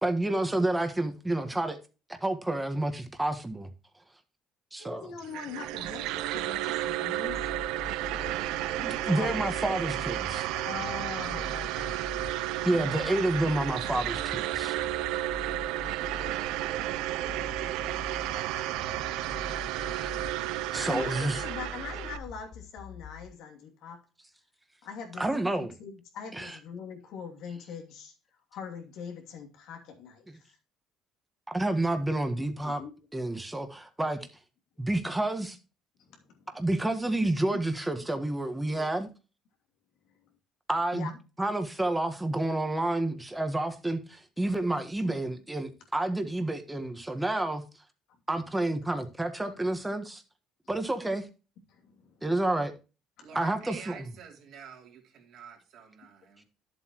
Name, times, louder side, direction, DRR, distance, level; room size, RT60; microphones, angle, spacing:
voice 1, 0.0-1.8 2.1-3.7 4.7-5.1 8.7-10.5 12.3-14.8 19.8-20.2 20.7-21.4 25.2-25.7 26.3-26.6 30.3-30.4 31.5-32.8 33.1-34.3 34.8-35.6 36.5-39.1 40.7-41.1 41.4-47.6 48.3-50.2 50.7-51.3 52.2-52.7 53.3-54.1, right 1 dB, 10° right, 1.6 m, -29 dB
voice 2, 4.8-7.4 8.5-9.6 10.6-11.9 20.6-24.0 24.8-25.3 25.5-28.1 28.5-30.5 32.6-32.9 36.1-36.7 37.5-37.6 38.7-38.9 40.9-41.2 51.7-52.3 53.2-53.3, left 6 dB, 75° left, 2.6 m, -42 dB
sound 1, 5.2-22.2, right 15 dB, 85° right, 0.5 m, -32 dB
sound 2, 7.3-23.3, left 4 dB, 45° left, 0.8 m, -44 dB
voice 3, 53.2-56.4, right 7 dB, 70° right, 3.2 m, -48 dB
11.0 x 7.7 x 3.0 m
cardioid pair, 100°, 0 cm